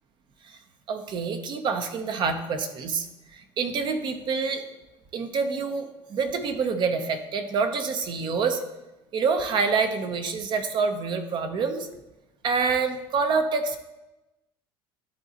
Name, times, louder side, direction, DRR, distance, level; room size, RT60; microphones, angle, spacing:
voice 1, 0.9-3.1 3.3-4.6 5.1-8.6 9.1-11.9 12.4-13.8, right 5 dB, 45° right, 7 dB, 0.8 m, -27 dB
11.0 x 3.9 x 2.9 m, 1.0 s
supercardioid pair, 110°, 11 cm